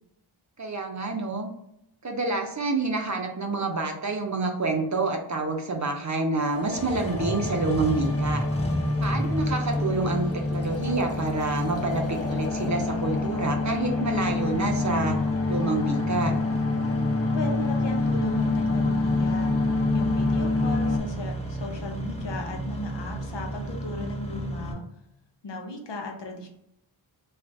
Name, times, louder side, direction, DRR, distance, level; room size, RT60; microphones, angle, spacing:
voice 1, 0.6-1.5 2.0-8.4 9.0-15.2 15.5-16.3, right 3 dB, 35° right, 3 dB, 0.6 m, -28 dB
sound 1, 6.4-21.0, left 3 dB, 30° left, 0.5 m, -27 dB
Engine starting, 6.6-24.7, right 1 dB, 15° left, 1.1 m, -34 dB
voice 2, 17.3-19.5 19.9-24.8 25.4-26.5, left 2 dB, 60° left, 2 dB, 0.8 m, -36 dB
2.5 x 2.4 x 3.3 m, 0.79 s
cardioid pair, 40°, 49 cm